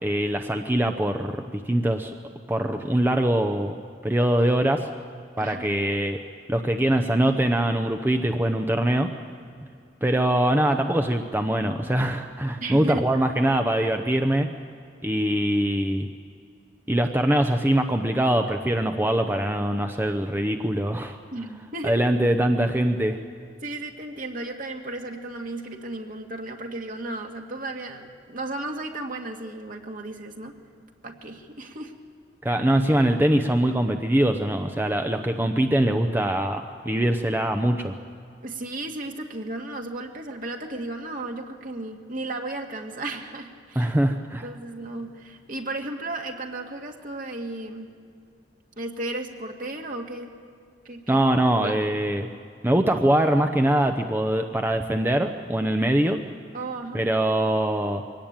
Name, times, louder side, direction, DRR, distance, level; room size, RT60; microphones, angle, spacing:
voice 1, 0.0-2.1 2.5-3.8 4.0-4.9 5.4-6.2 6.5-9.1 10.0-14.5 15.0-16.1 16.9-21.2 21.8-23.2 32.4-37.9 43.8-44.4 51.1-52.3 52.6-56.2 56.9-58.0, right 1 dB, 10° right, 5 dB, 0.7 m, -23 dB
voice 2, 12.6-13.1 21.3-22.0 23.6-30.5 31.0-31.9 38.4-43.9 44.3-47.9 48.8-50.3 50.9-51.2 51.5-51.8 56.5-57.0, right 2 dB, 50° right, 3 dB, 2.0 m, -34 dB
23.0 x 18.0 x 8.8 m, 2.4 s
head